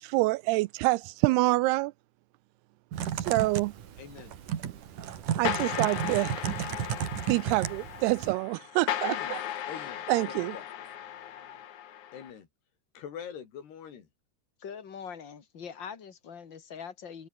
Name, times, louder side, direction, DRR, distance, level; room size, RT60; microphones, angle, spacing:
voice 1, 0.0-1.9 3.3-3.7 5.4-6.4 7.3-9.4 10.1-10.6, right 21 dB, 85° right, 2.5 m, -26 dB
Typing, 2.9-8.3, right 9 dB, 55° right, 3.2 m, -34 dB
voice 2, 4.0-4.3 9.0-9.4 9.7-10.1 10.3-10.7 12.1-12.5 13.0-14.1, left 8 dB, 75° left, 5.2 m, -43 dB
sound 1, 5.4-12.3, left 10 dB, 55° left, 2.5 m, -36 dB
voice 3, 14.6-17.3, left 7 dB, 35° left, 2.2 m, -42 dB
omnidirectional pair, 4.7 m